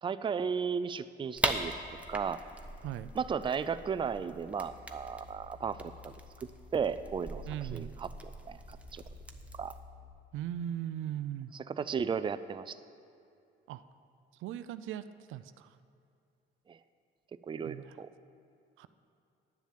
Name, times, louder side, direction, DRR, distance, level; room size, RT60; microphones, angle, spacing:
voice 1, 0.0-1.7 2.1-2.4 3.1-6.1 6.7-8.1 8.5-9.0 9.5-9.7 11.5-12.8 16.7-16.8 17.5-18.1, right 6 dB, 25° right, 12 dB, 0.4 m, -34 dB
sound 1, 1.3-9.8, right 1 dB, 5° right, 0.8 m, -41 dB
sound 2, 4.1-10.1, left 5 dB, 35° left, 2.1 m, -55 dB
voice 2, 7.5-7.9 10.3-11.5 13.7-13.8 14.4-15.7 17.6-17.9 18.8-18.9, right 11 dB, 85° right, 13 dB, 0.4 m, -38 dB
10.0 x 7.2 x 7.5 m, 2.5 s
cardioid pair, 90°, 20 cm